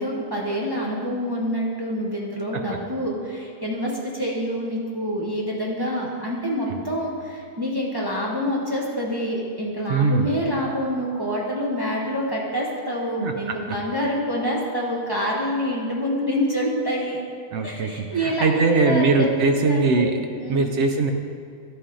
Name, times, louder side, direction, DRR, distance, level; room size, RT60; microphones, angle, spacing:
voice 1, 0.0-17.2 17.6-20.7, equal, 25° right, -4 dB, 0.6 m, -27 dB
voice 2, 9.9-10.3 13.2-13.8 17.5-20.2 20.5-21.1, right 4 dB, 65° right, 5 dB, 0.7 m, -21 dB
11.5 x 4.2 x 3.8 m, 2.4 s
omnidirectional pair, 1.6 m